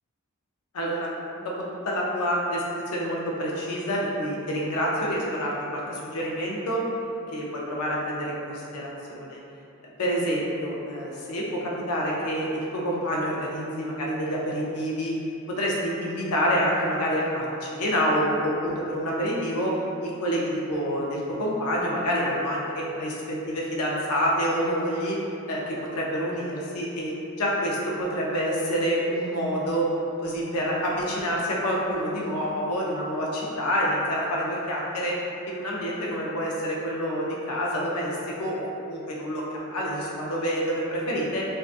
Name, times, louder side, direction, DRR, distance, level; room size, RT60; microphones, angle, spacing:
voice 1, 0.7-6.9 7.3-9.4 10.0-15.1 15.5-25.2 25.5-29.9 30.2-35.2 35.5-41.5, equal, 90° left, -4 dB, 0.5 m, -27 dB
2.6 x 2.2 x 2.4 m, 2.6 s
head